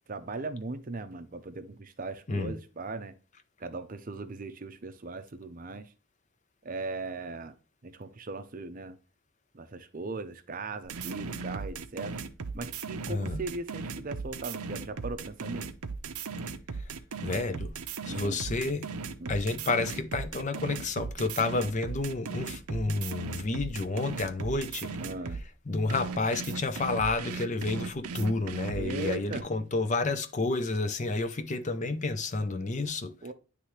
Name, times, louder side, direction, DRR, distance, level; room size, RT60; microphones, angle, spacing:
voice 1, 0.1-3.1 3.6-5.9 6.6-7.5 7.8-9.0 9.5-12.2 12.5-15.7 18.1-18.4 19.2-19.3 25.0-25.4 28.8-29.5 33.2-33.3, right 3 dB, 40° right, 0.6 m, -38 dB
sound 1, 10.9-25.4 25.9-29.4, right 5 dB, 90° right, 0.7 m, -37 dB
voice 2, 13.1-13.4 17.2-17.7 18.1-18.9 19.3-24.9 25.7-33.1, left 3 dB, 35° left, 0.5 m, -30 dB
9.8 x 3.3 x 3.1 m
head